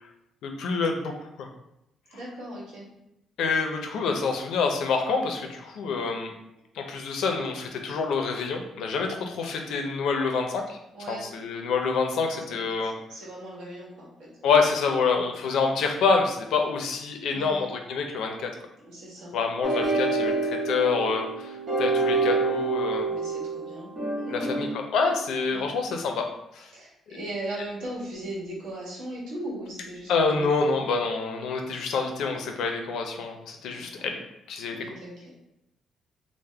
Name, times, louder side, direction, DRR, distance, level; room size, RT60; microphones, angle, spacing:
voice 1, 0.4-1.5 3.4-6.3 6.8-10.8 11.1-12.9 14.4-18.5 19.3-23.1 24.3-26.3 26.5-26.7 30.1-34.2 34.5-34.9, left 4 dB, 75° left, 4 dB, 0.5 m, -27 dB
voice 2, 2.1-2.9 10.9-11.3 12.3-14.3 14.7-14.8 15.2-15.3 17.3-17.7 18.8-19.4 23.1-23.9 24.2-24.6 25.5-25.7 26.7-30.8 33.7-34.1 34.7-35.3, right 1 dB, 80° right, -5 dB, 1.3 m, -38 dB
sound 1, 19.6-24.7, right 3 dB, 25° right, 1.4 m, -27 dB
3.4 x 2.1 x 3.3 m, 0.87 s
cardioid pair, 165°, 0 cm